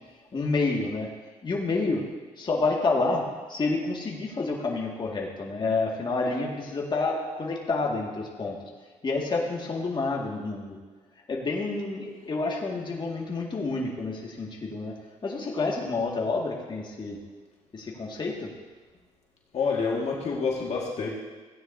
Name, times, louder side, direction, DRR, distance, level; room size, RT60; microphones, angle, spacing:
voice 1, 0.3-1.1 1.4-2.0 2.4-3.2 3.5-8.6 9.0-10.8 11.3-14.9 15.2-17.2 17.7-18.5, left 3 dB, 35° left, -2 dB, 2.0 m, -29 dB
voice 2, 19.5-21.1, left 5 dB, 55° left, -2 dB, 1.9 m, -27 dB
16.0 x 9.6 x 2.7 m, 1.3 s
cardioid pair, 80°, 13 cm